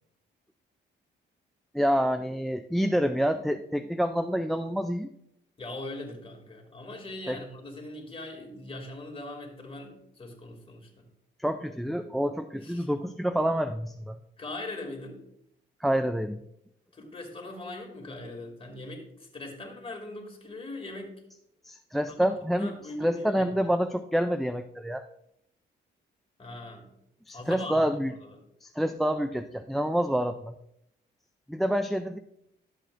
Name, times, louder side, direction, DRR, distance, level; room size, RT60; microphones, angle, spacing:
voice 1, 1.7-5.1 7.3-7.4 11.4-14.2 15.8-16.4 21.6-22.7 23.0-25.0 27.3-28.1 28.6-30.5 31.5-32.2, equal, ahead, 10 dB, 0.3 m, -27 dB
voice 2, 5.6-11.0 12.6-12.9 14.4-15.2 16.9-21.1 22.0-22.1 22.5-23.5 26.4-26.9 27.3-27.9 28.2-28.3, left 2 dB, 30° left, 1 dB, 2.5 m, -41 dB
12.0 x 7.7 x 2.6 m, 0.75 s
cardioid pair, 90°, 20 cm